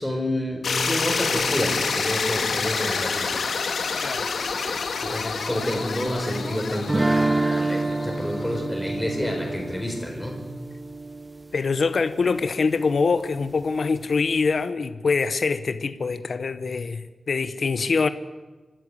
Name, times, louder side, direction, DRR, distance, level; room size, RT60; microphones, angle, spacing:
voice 1, 0.0-3.4 4.6-10.4, left 1 dB, 5° left, 2 dB, 4.4 m, -29 dB
sound 1, 0.6-8.6, left 5 dB, 65° left, 2.0 m, -28 dB
sound 2, 6.9-11.8, right 2 dB, 20° right, 0.8 m, -27 dB
voice 2, 11.5-18.1, left 4 dB, 50° left, 12 dB, 0.9 m, -24 dB
26.0 x 12.5 x 9.7 m, 1.2 s
wide cardioid pair, 170°, 0 cm